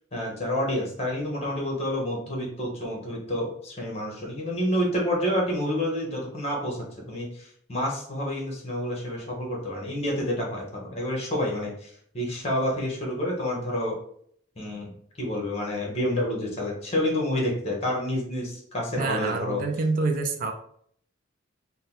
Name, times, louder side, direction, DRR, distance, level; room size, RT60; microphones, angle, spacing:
voice 1, 0.1-14.0 14.6-14.9 15.2-19.6, left 1 dB, 30° left, -1 dB, 1.3 m, -29 dB
voice 2, 19.0-20.5, right 3 dB, 45° right, 6 dB, 0.4 m, -27 dB
4.0 x 2.2 x 3.9 m, 0.62 s
head